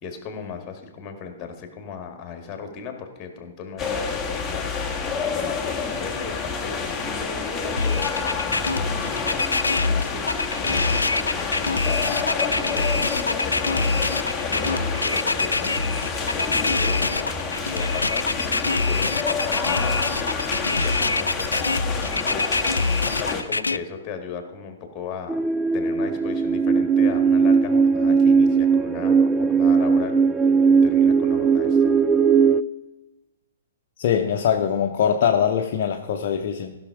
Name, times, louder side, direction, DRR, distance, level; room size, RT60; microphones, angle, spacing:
voice 1, 0.0-15.9 16.3-20.0 20.8-22.6 23.2-25.4 25.7-30.2 30.8-32.0, left 6 dB, 25° left, 6 dB, 2.0 m, -37 dB
sound 1, 3.8-23.4, left 5 dB, 10° left, 1.7 m, -28 dB
sound 2, 7.8-23.8, left 3 dB, 90° left, 0.3 m, -24 dB
sound 3, 25.3-32.6, right 5 dB, 10° right, 0.4 m, -18 dB
voice 2, 34.0-36.8, left 8 dB, 50° left, 3 dB, 0.8 m, -22 dB
15.0 x 6.2 x 4.8 m, 1.1 s
figure-of-eight pair, 120°, 0 cm